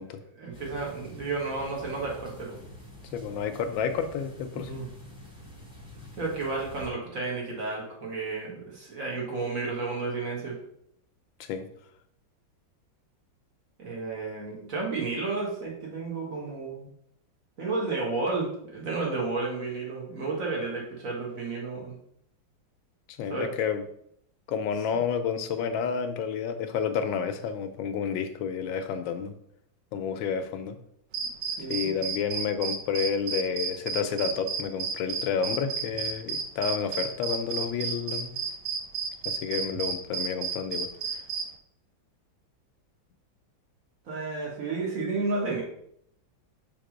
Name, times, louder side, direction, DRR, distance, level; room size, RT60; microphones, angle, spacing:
voice 1, 0.4-2.6 4.5-4.9 6.2-10.6 13.8-16.9 17.6-22.0 23.3-23.5 31.2-31.3 31.6-32.0 44.1-45.6, right 3 dB, 45° right, -2 dB, 2.0 m, -32 dB
sound 1, 0.5-6.9, left 1 dB, 5° right, 1.4 m, -47 dB
voice 2, 3.1-4.7 11.4-11.7 23.2-23.8 24.5-29.3 29.9-30.8 31.7-38.3 39.3-40.9, left 7 dB, 80° left, 9 dB, 1.4 m, -30 dB
sound 2, 31.1-41.5, right 6 dB, 70° right, 1.3 m, -31 dB
5.9 x 3.6 x 5.0 m, 0.72 s
omnidirectional pair, 2.1 m